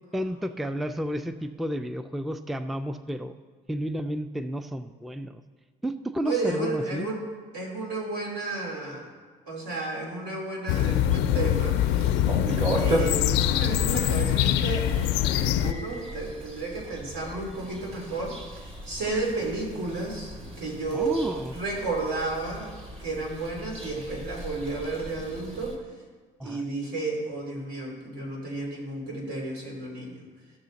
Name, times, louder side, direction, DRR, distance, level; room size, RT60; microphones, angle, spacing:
voice 1, 0.1-3.3 3.7-5.4 5.8-7.1 20.9-21.5 26.4-26.6, equal, ahead, 10 dB, 0.3 m, -31 dB
voice 2, 6.2-7.2 7.5-9.1 9.4-11.8 12.8-14.9 15.2-25.8 26.4-30.2, right 3 dB, 80° right, -1 dB, 3.0 m, -32 dB
sound 1, 10.7-15.7, left 11 dB, 90° left, 0.4 m, -24 dB
sound 2, 10.7-25.8, right 1 dB, 35° right, 2.0 m, -36 dB
14.0 x 6.4 x 4.0 m, 1.5 s
cardioid pair, 110°, 17 cm